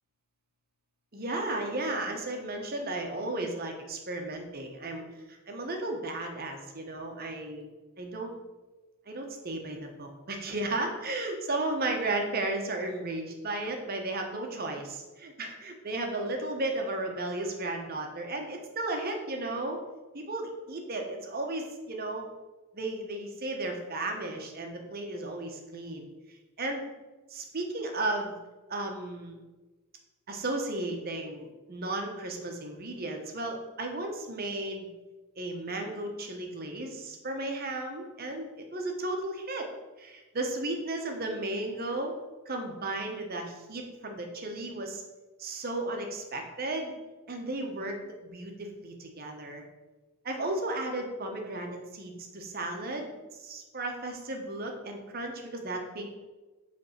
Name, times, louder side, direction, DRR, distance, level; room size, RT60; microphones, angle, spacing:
voice 1, 1.1-5.0 5.3-7.7 8.0-8.3 9.1-19.8 20.1-22.3 22.7-26.8 27.3-28.3 28.7-29.4 30.3-34.9 35.4-39.7 40.0-42.1 42.5-45.0 45.4-46.9 47.3-48.0 48.2-49.6 50.2-56.2, right 2 dB, 40° right, 3 dB, 0.9 m, -34 dB
5.4 x 3.4 x 5.6 m, 1.2 s
head